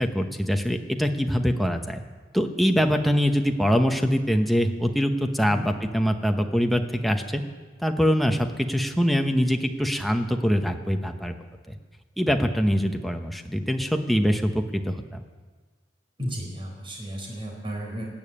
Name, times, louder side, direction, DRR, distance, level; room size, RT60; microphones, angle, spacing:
voice 1, 0.0-2.0 2.3-7.4 7.8-11.3 11.7-11.8 12.2-15.2, equal, ahead, 4 dB, 0.9 m, -24 dB
voice 2, 16.2-18.0, equal, 30° right, 0 dB, 4.2 m, -33 dB
19.5 x 7.2 x 8.6 m, 1.4 s
head